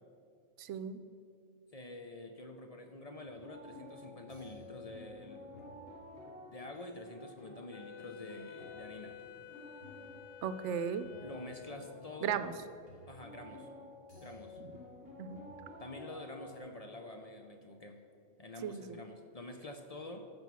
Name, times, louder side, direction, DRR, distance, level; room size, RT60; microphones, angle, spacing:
voice 1, 0.6-1.0 10.4-11.1 12.2-12.5 14.6-14.7 15.2-15.4 18.6-19.0, right 8 dB, 85° right, 12 dB, 0.9 m, -36 dB
voice 2, 1.7-5.9 6.5-9.2 11.2-12.4 13.1-13.7 14.2-14.6 15.8-18.0 18.4-20.3, left 2 dB, 40° left, 5 dB, 0.6 m, -48 dB
sound 1, 3.2-16.6, left 1 dB, 55° left, 2.4 m, -52 dB
Wind instrument woodwind instrument, 7.7-12.3, left 8 dB, 75° left, 0.9 m, -51 dB
14.0 x 5.3 x 6.1 m, 2.5 s
omnidirectional pair, 1.2 m